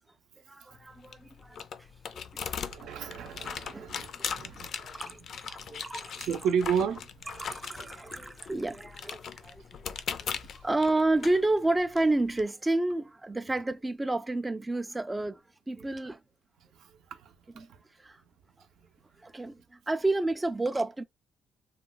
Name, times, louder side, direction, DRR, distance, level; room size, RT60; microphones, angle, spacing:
voice 1, 0.5-1.9 2.1-2.4 3.7-6.1 7.3-16.2 17.6-17.7 18.0-18.2 19.2-21.0, right 2 dB, 15° right, 0.3 m, -31 dB
sound 1, 0.7-12.4, left 7 dB, 60° left, 0.4 m, -40 dB
voice 2, 2.4-5.0 5.6-5.7 6.2-7.3 10.1-10.2 16.8-17.7, right 7 dB, 80° right, 0.6 m, -33 dB
2.3 x 2.3 x 3.8 m
cardioid pair, 90°, 0 cm